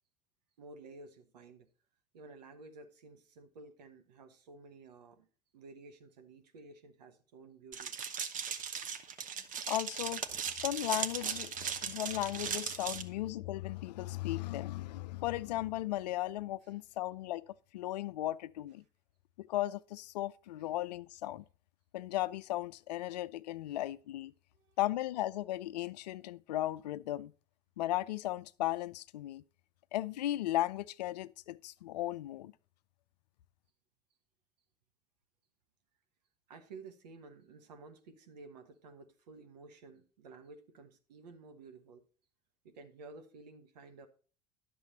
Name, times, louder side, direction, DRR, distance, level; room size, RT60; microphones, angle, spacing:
voice 1, 0.6-1.7 2.1-5.3 5.5-7.9 23.7-23.8 24.5-24.8 36.5-42.0 42.6-44.1, right 3 dB, 80° right, 1.2 m, -53 dB
sound 1, 7.7-13.0, right 7 dB, 40° right, 1.0 m, -38 dB
voice 2, 9.7-17.5 17.7-18.8 19.4-21.4 21.9-24.3 24.8-27.3 27.8-29.4 29.9-32.5, left 15 dB, 80° left, 0.4 m, -36 dB
10.5 x 6.8 x 4.0 m
hypercardioid pair, 75°, 21 cm